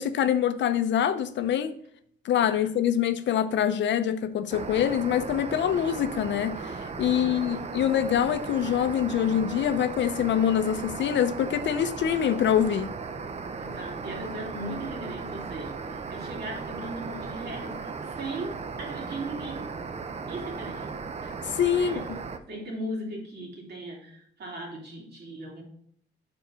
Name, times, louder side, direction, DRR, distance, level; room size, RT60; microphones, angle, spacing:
voice 1, 0.0-1.8 2.2-12.9 21.4-22.0, left 9 dB, 65° left, 0.6 m, -25 dB
voice 2, 2.3-2.7 7.1-7.7 13.6-19.7 20.3-20.9 21.7-22.0 22.5-25.6, right 1 dB, 55° right, 2.6 m, -38 dB
sound 1, 4.5-22.4, right 4 dB, 35° right, 0.6 m, -36 dB
5.3 x 4.5 x 6.0 m
cardioid pair, 90°, 20 cm